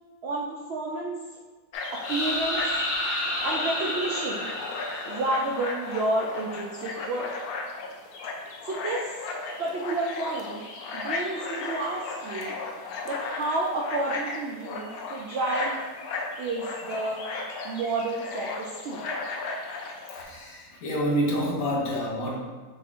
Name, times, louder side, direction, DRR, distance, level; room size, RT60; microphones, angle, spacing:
voice 1, 0.2-1.2 1.9-2.6 3.4-4.5 5.1-7.3 8.6-9.2 9.6-10.7 10.9-12.5 13.0-15.8 16.4-17.2 17.6-19.1, right 2 dB, 70° right, -2 dB, 0.6 m, -30 dB
sound 1, 1.7-20.2, left 3 dB, 90° left, 1.1 m, -36 dB
sound 2, 2.0-5.8, left 1 dB, 45° left, 1.0 m, -30 dB
voice 2, 20.1-22.4, equal, 70° left, -2 dB, 1.3 m, -28 dB
5.8 x 2.5 x 3.5 m, 1.4 s
omnidirectional pair, 1.6 m